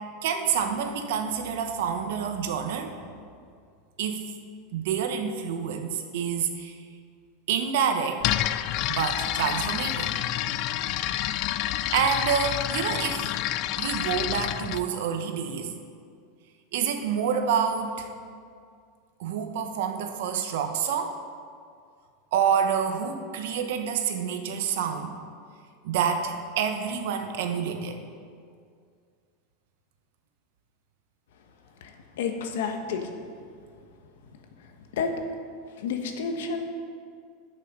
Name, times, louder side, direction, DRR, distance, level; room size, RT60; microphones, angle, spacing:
voice 1, 0.2-3.0 4.0-4.2 4.7-6.8 7.5-8.2 8.9-10.1 11.3-11.5 11.9-13.2 13.8-15.7 16.7-18.1 19.2-21.1 22.3-25.2 25.8-28.0, right 7 dB, 70° right, 5 dB, 1.0 m, -27 dB
sound 1, 8.2-14.8, left 13 dB, 40° left, 0.3 m, -28 dB
voice 2, 32.2-33.0 35.0-35.1 35.8-36.6, left 6 dB, 85° left, 5 dB, 1.2 m, -29 dB
11.0 x 6.6 x 5.4 m, 2.2 s
supercardioid pair, 165°, 0 cm